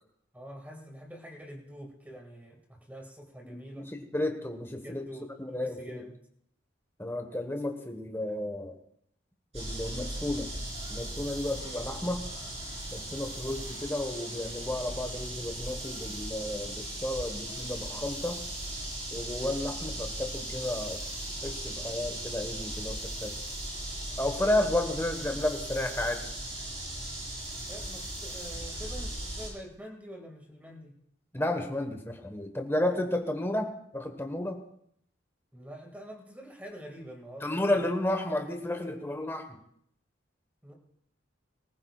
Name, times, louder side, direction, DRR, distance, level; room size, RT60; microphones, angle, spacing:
voice 1, 0.3-3.9 4.8-6.1 27.7-31.0 35.5-37.9 40.6-40.7, right 1 dB, 10° right, 1 dB, 2.1 m, -46 dB
voice 2, 3.4-3.8 4.1-5.0 5.4-6.0 7.0-8.7 9.5-10.5 10.9-12.2 12.9-18.4 19.1-21.0 21.4-23.3 24.2-26.2 31.3-34.6 37.4-39.5, left 1 dB, 10° left, 4 dB, 1.3 m, -32 dB
sound 1, 9.5-29.5, right 1 dB, 35° right, 4.6 m, -38 dB
23.5 x 14.5 x 2.4 m, 0.70 s
head